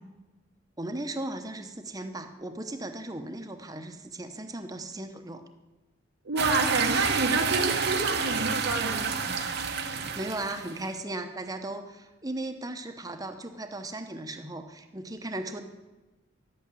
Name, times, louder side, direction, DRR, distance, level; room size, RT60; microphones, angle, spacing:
voice 1, 0.8-5.4 10.1-15.6, right 2 dB, 20° right, 7 dB, 0.8 m, -37 dB
voice 2, 6.2-9.5, right 2 dB, 80° right, 1 dB, 1.4 m, -29 dB
sound 1, 6.4-10.9, right 6 dB, 55° right, 0.9 m, -29 dB
11.5 x 8.5 x 8.3 m, 1.1 s
head